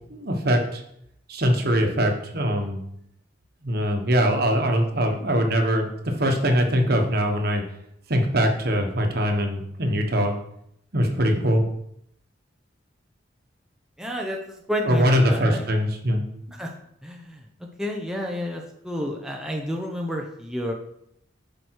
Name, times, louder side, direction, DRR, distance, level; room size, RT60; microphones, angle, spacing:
voice 1, 0.1-0.8 1.3-2.8 3.6-5.9 6.2-7.6 8.1-10.3 10.9-11.6 14.9-16.2, equal, 55° right, 4 dB, 1.3 m, -22 dB
voice 2, 14.0-15.7 16.5-16.7 17.0-20.7, equal, 5° right, 0 dB, 0.8 m, -30 dB
10.5 x 5.1 x 4.7 m, 0.75 s
head